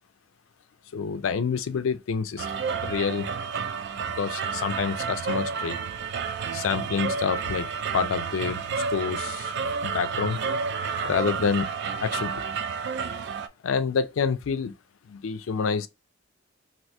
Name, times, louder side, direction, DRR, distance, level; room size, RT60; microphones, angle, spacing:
voice 1, 0.9-2.5 2.8-3.3 4.1-5.8 6.5-7.7 7.9-8.6 8.9-9.5 9.8-10.4 11.0-11.7 12.0-12.3 13.6-14.7 15.1-15.9, left 6 dB, 75° left, 0.4 m, -27 dB
sound 1, 2.4-13.5, right 5 dB, 55° right, 0.4 m, -30 dB
2.8 x 2.6 x 3.2 m
head